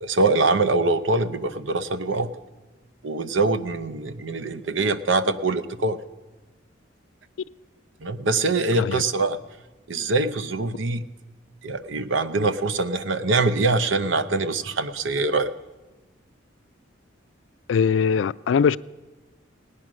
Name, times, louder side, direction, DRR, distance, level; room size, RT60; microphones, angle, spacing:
voice 1, 0.0-2.3 3.0-6.0 8.0-9.4 9.9-11.0 11.6-15.5, right 3 dB, 90° right, 13 dB, 0.7 m, -23 dB
voice 2, 17.7-18.8, left 6 dB, 85° left, 19 dB, 0.3 m, -21 dB
18.0 x 9.7 x 6.2 m, 1.2 s
head